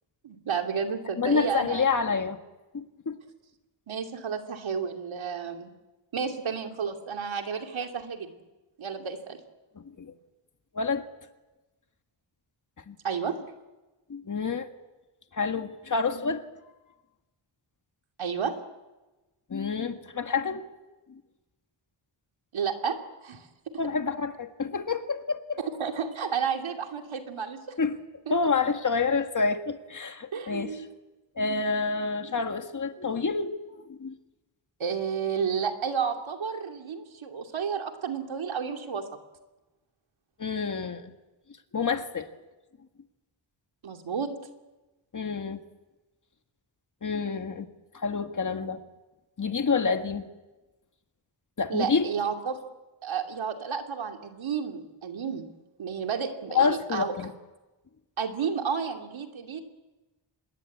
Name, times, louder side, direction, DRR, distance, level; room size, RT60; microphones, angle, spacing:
voice 1, 0.2-1.8 3.9-5.7 6.1-8.3 8.8-9.4 13.0-13.4 18.2-18.5 22.5-23.0 23.2-23.7 25.6-27.8 28.3-28.4 30.3-30.9 34.8-39.1 43.8-44.3 51.7-52.6 53.0-55.5 55.8-57.1 58.2-59.6, right 6 dB, 90° right, 4 dB, 2.9 m, -31 dB
voice 2, 1.2-2.4 2.7-3.2 9.7-10.1 10.7-11.1 12.9-13.0 14.1-14.7 15.3-16.4 19.5-20.6 21.1-21.2 23.8-25.6 27.8-28.0 28.3-30.7 31.4-33.6 33.9-34.1 40.4-41.1 41.7-42.3 45.1-45.6 47.0-47.7 47.9-48.8 49.4-50.3 51.6-52.1 56.5-57.3, left 5 dB, 40° left, 7 dB, 1.7 m, -28 dB
26.5 x 21.5 x 8.6 m, 1.1 s
wide cardioid pair, 160°, 46 cm